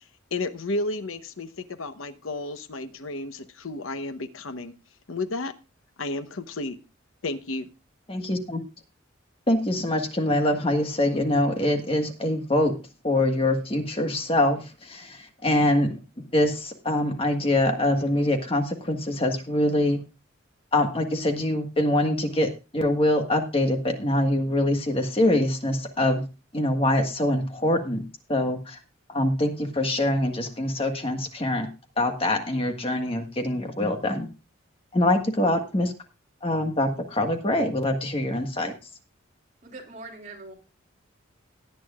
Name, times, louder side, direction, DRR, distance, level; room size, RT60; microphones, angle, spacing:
voice 1, 0.3-4.7 5.1-5.5 6.0-6.8 7.2-7.7, left 2 dB, 85° left, 11 dB, 1.0 m, -32 dB
voice 2, 8.1-8.6 9.5-12.7 13.0-16.0 16.3-20.0 20.7-26.2 26.5-28.0 28.3-28.8 29.1-31.7 32.0-34.3 34.9-35.9 36.4-38.7, left 1 dB, 30° left, 5 dB, 1.5 m, -24 dB
voice 3, 39.6-40.5, right 2 dB, 35° right, 0 dB, 2.9 m, -42 dB
18.0 x 9.2 x 2.4 m, 0.30 s
head